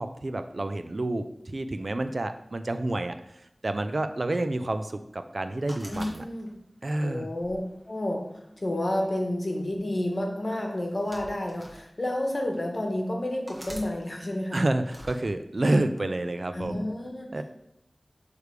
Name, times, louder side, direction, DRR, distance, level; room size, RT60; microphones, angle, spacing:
voice 1, 0.0-6.2 6.8-7.3 14.5-16.8 17.3-17.4, right 2 dB, 65° right, 9 dB, 0.4 m, -29 dB
sound 1, 5.7-6.7 7.4-8.5 9.5-9.8 10.8-11.8 12.5-12.6 13.5-13.9 14.8-15.2, equal, 20° right, 1.3 m, -45 dB
voice 2, 5.9-6.5 7.0-7.6 7.8-8.2 8.6-14.6 16.5-17.4, left 1 dB, 55° left, 1 dB, 1.2 m, -30 dB
6.6 x 3.3 x 4.7 m, 0.80 s
wide cardioid pair, 55°, 0 cm